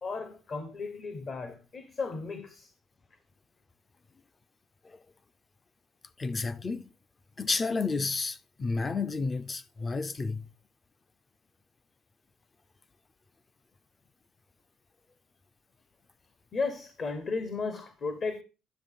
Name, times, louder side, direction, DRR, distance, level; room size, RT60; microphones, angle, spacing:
voice 1, 0.0-2.7 16.5-18.4, left 4 dB, 45° left, 1.2 m, -35 dB
voice 2, 6.2-6.9 7.4-10.5, left 4 dB, 25° left, 0.5 m, -31 dB
10.5 x 7.3 x 3.7 m
cardioid pair, 105°, 0 cm